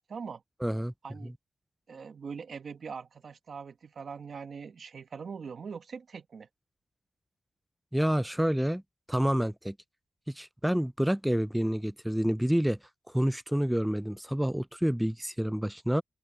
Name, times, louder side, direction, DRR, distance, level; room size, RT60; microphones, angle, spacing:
voice 1, 0.0-0.4 1.0-1.3 1.9-6.5, right 5 dB, 60° right, 1.2 m, -42 dB
voice 2, 0.6-0.9 7.9-8.8 9.1-9.7 10.3-12.8 13.1-16.0, equal, 5° right, 0.4 m, -28 dB
cardioid pair, 90°, 0 cm